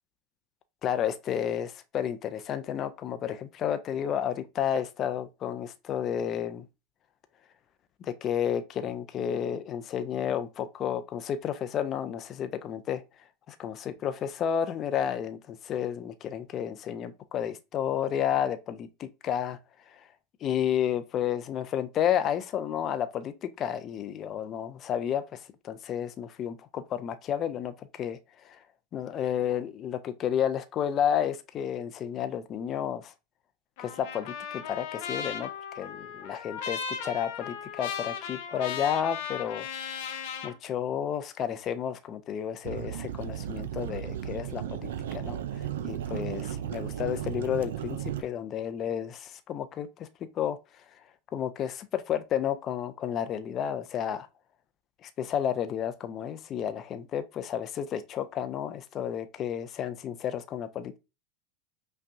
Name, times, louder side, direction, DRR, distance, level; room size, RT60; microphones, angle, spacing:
voice 1, 0.8-6.6 8.0-13.0 13.5-19.6 19.9-20.1 20.4-28.2 28.4-28.6 28.9-33.1 33.8-35.5 35.7-39.7 40.4-45.4 45.8-50.1 50.4-50.6 51.3-54.3 55.0-61.0, left 9 dB, 40° left, 0.4 m, -31 dB
Trumpet, 33.8-40.5, left 7 dB, 65° left, 0.8 m, -37 dB
sound 1, 42.6-48.2, right 10 dB, 80° right, 0.4 m, -35 dB
5.3 x 2.2 x 2.6 m
hypercardioid pair, 110°, 0 cm